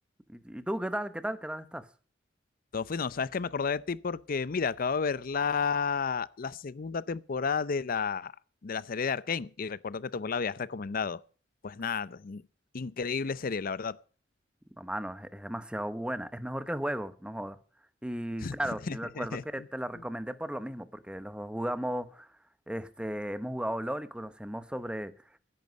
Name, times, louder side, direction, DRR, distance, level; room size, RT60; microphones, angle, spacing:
voice 1, 0.3-1.9 14.8-17.6 18.0-22.3 22.7-25.1, right 1 dB, 5° right, 0.9 m, -35 dB
voice 2, 2.7-8.3 8.6-11.2 11.6-12.4 12.7-14.0 18.4-18.6 18.9-19.4 19.9-20.0, left 5 dB, 50° left, 0.6 m, -32 dB
16.0 x 11.0 x 5.2 m
head